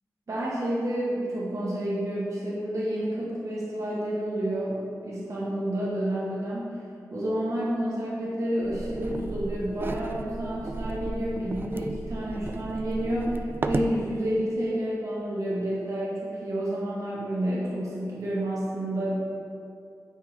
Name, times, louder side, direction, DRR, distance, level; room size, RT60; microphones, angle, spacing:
voice 1, 0.3-6.8 7.1-19.1, right 1 dB, 55° right, -7 dB, 1.5 m, -30 dB
sound 1, 8.6-14.0, right 3 dB, 35° right, 0.3 m, -34 dB
9.2 x 3.6 x 4.9 m, 2.5 s
wide cardioid pair, 90°, 7 cm